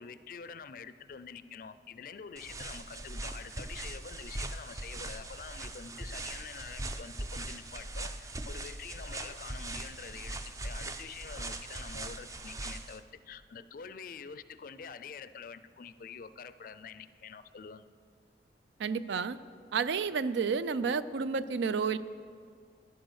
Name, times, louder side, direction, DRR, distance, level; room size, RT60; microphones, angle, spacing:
voice 1, 0.0-17.9, left 6 dB, 50° left, 14 dB, 0.4 m, -47 dB
sound 1, 2.4-13.0, right 2 dB, 20° right, 0.4 m, -40 dB
voice 2, 18.8-19.4 19.7-22.0, right 5 dB, 85° right, 15 dB, 0.4 m, -30 dB
11.0 x 8.0 x 6.4 m, 2.2 s
head